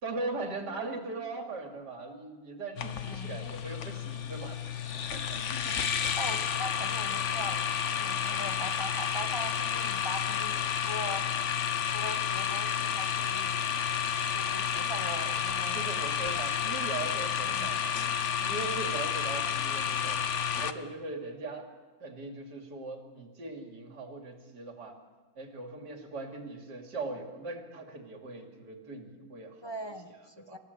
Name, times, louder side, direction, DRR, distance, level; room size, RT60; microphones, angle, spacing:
voice 1, 0.0-4.6 4.9-5.4 15.7-18.0 18.4-20.2 20.6-21.7 22.0-25.0 25.4-29.9 30.4-30.6, right 3 dB, 55° right, 3 dB, 3.1 m, -40 dB
sound 1, 2.8-20.7, left 8 dB, 50° left, 1.0 m, -31 dB
voice 2, 3.0-3.3 5.3-5.8 6.2-7.6 7.9-11.2 11.9-13.5 14.3-16.5 17.4-17.7 29.6-30.6, equal, 20° left, 7 dB, 0.9 m, -41 dB
27.5 x 15.5 x 8.1 m, 1.4 s
omnidirectional pair, 2.2 m